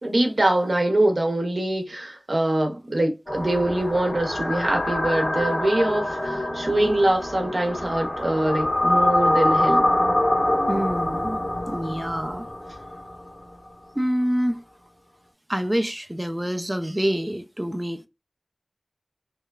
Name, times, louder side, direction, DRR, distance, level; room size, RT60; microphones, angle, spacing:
voice 1, 0.0-9.8, right 1 dB, 70° right, 0.7 m, -23 dB
sound 1, 3.3-13.4, left 1 dB, 55° left, 1.4 m, -25 dB
voice 2, 10.7-11.4 11.7-12.5 14.0-14.6 15.5-18.1, equal, 15° right, 0.3 m, -26 dB
2.9 x 2.2 x 2.2 m
wide cardioid pair, 55°, 0 cm